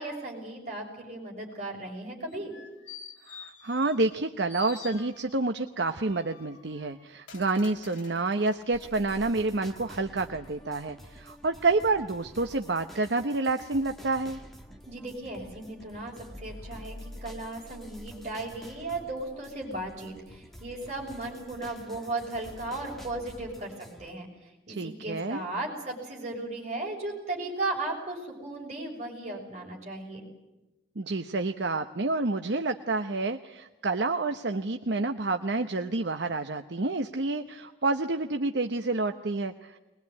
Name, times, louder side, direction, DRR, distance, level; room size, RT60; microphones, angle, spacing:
voice 1, 0.0-2.5 14.9-24.3 24.7-30.2, right 2 dB, 35° right, -2 dB, 6.3 m, -36 dB
Squeaky Metal Door, 2.3-4.2 4.5-5.5 6.0-8.6 9.1-9.2, left 6 dB, 85° left, 2.6 m, -48 dB
voice 2, 3.3-14.4 24.7-25.4 31.0-39.8, right 3 dB, 65° right, 7 dB, 0.9 m, -29 dB
sound 1, 8.7-24.1, equal, ahead, 1.6 m, -48 dB
21.5 x 21.5 x 9.5 m, 1.0 s
head